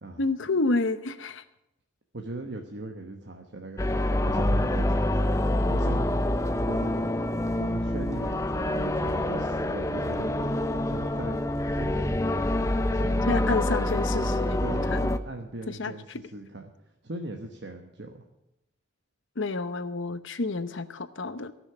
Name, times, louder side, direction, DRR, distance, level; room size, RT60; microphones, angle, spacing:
voice 1, 0.2-1.4 13.3-14.6 14.9-15.1 15.7-15.9 19.4-21.5, left 3 dB, 70° left, 11 dB, 0.9 m, -29 dB
voice 2, 2.1-6.0 6.7-7.1 7.6-10.3 10.7-11.4 11.8-12.2 12.9-13.6 14.6-16.7 17.0-18.2, right 2 dB, 55° right, 3 dB, 1.2 m, -39 dB
sound 1, 3.8-15.2, left 1 dB, 15° left, 0.5 m, -26 dB
17.0 x 6.3 x 9.9 m, 0.88 s
head